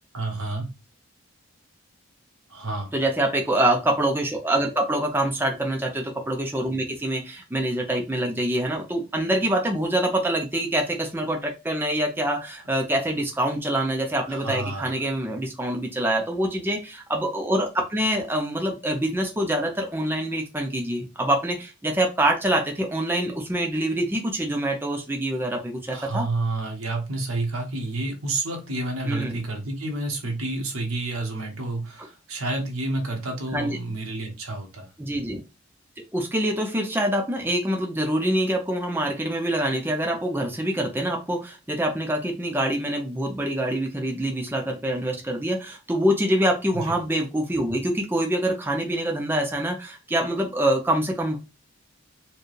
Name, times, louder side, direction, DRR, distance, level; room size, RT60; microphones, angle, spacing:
voice 1, 0.1-0.7 2.5-2.9 14.3-14.9 25.9-34.9 46.7-46.9, right 2 dB, 85° right, 1.2 m, -29 dB
voice 2, 2.9-26.3 29.1-29.4 33.5-33.8 35.0-35.4 36.1-51.4, right 1 dB, 10° right, 0.5 m, -25 dB
4.4 x 2.3 x 3.2 m
head